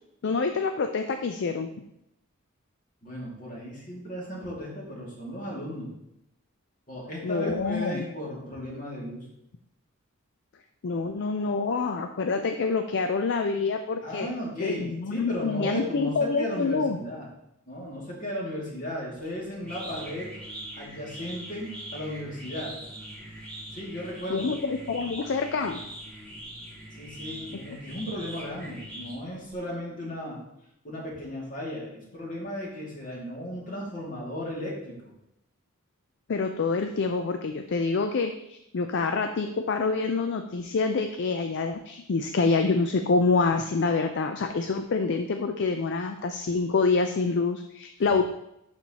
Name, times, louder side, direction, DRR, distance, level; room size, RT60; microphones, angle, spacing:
voice 1, 0.2-1.7 7.2-8.1 10.8-14.3 14.6-17.0 24.3-25.8 36.3-48.2, left 4 dB, 55° left, 6 dB, 0.4 m, -26 dB
voice 2, 3.0-5.9 6.9-9.3 14.0-17.3 17.7-20.3 20.8-22.8 23.7-24.5 27.0-30.4 30.8-34.9, equal, 40° left, -4 dB, 2.3 m, -35 dB
sound 1, 19.2-29.5, right 1 dB, 5° left, 1.8 m, -42 dB
11.5 x 4.4 x 2.9 m, 0.83 s
head